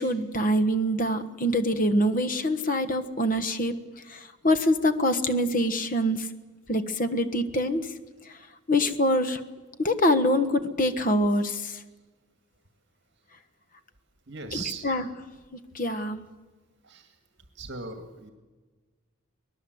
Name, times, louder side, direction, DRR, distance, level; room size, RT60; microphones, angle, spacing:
voice 1, 0.0-3.7 4.1-6.3 6.7-7.9 8.7-9.4 9.8-11.8 14.8-15.0 15.7-16.2, equal, 35° left, 11 dB, 1.3 m, -25 dB
voice 2, 14.3-14.9 16.8-17.1 17.6-18.3, right 5 dB, 50° right, 7 dB, 2.0 m, -38 dB
24.5 x 18.5 x 7.9 m, 1.3 s
head